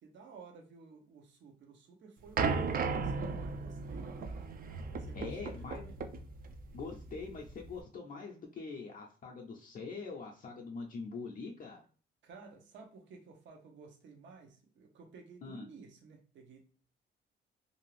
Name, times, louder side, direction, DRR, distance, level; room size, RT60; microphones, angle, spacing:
voice 1, 0.0-4.3 5.0-6.0 12.2-16.6, right 4 dB, 70° right, 3 dB, 0.8 m, -54 dB
sound 1, 2.4-7.8, right 4 dB, 45° right, 0.4 m, -36 dB
voice 2, 5.1-5.8 6.7-11.8 15.4-15.7, left 4 dB, 45° left, 0 dB, 0.5 m, -43 dB
2.6 x 2.4 x 3.2 m, 0.40 s
cardioid pair, 90°, 20 cm